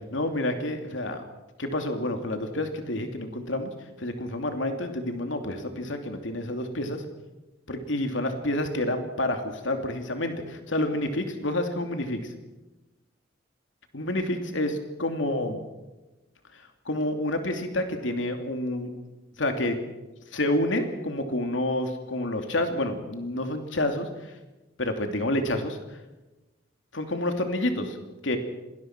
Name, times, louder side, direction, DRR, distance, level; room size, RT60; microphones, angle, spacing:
voice 1, 0.1-1.3 1.6-3.7 4.0-7.0 7.7-12.2 13.9-15.6 16.9-18.9 19.4-19.8 20.3-24.1 24.8-25.8 26.9-28.0 28.2-28.4, left 1 dB, 90° left, 5 dB, 2.7 m, -28 dB
26.5 x 19.5 x 6.1 m, 1.1 s
head